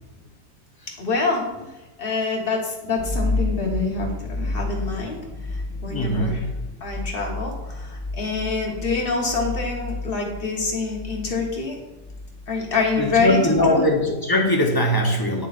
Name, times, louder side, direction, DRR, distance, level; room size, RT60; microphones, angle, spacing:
voice 1, 1.0-1.7 2.0-5.2 5.8-6.4 6.8-11.8 12.5-13.8, left 3 dB, 45° left, 0 dB, 1.4 m, -26 dB
sound 1, 3.0-13.9, left 2 dB, 15° right, 2.3 m, -31 dB
voice 2, 5.9-6.4 13.0-15.5, left 1 dB, 20° left, 0 dB, 0.7 m, -20 dB
8.8 x 6.5 x 2.5 m, 1.0 s
omnidirectional pair, 1.4 m